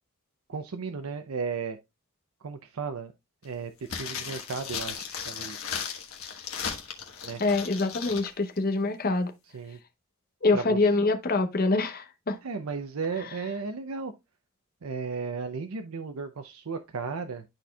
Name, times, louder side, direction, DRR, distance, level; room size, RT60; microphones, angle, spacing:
voice 1, 0.5-1.8 2.4-3.1 3.4-5.8 7.2-7.4 9.5-9.8 10.5-10.8 12.4-14.1 14.8-17.4, right 5 dB, 85° right, 0.6 m, -34 dB
sound 1, 3.8-8.3 8.6-8.7, left 7 dB, 80° left, 1.3 m, -36 dB
voice 2, 7.4-9.3 10.4-12.4, left 3 dB, 45° left, 0.9 m, -25 dB
11.5 x 4.3 x 2.3 m
head